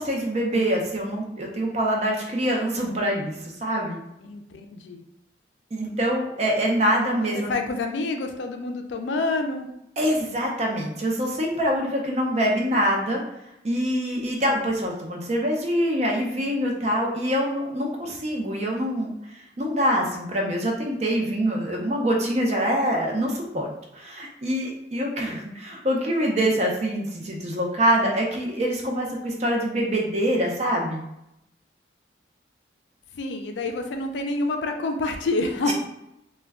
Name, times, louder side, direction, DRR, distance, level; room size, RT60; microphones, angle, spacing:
voice 1, 0.0-4.0 5.7-7.6 10.0-13.2 13.6-19.1 19.6-31.1 35.7-35.8, equal, 40° right, 0 dB, 0.5 m, -25 dB
voice 2, 4.2-5.0 7.0-9.7 33.1-35.7, left 2 dB, 75° left, 5 dB, 0.4 m, -28 dB
2.2 x 2.2 x 3.4 m, 0.83 s
head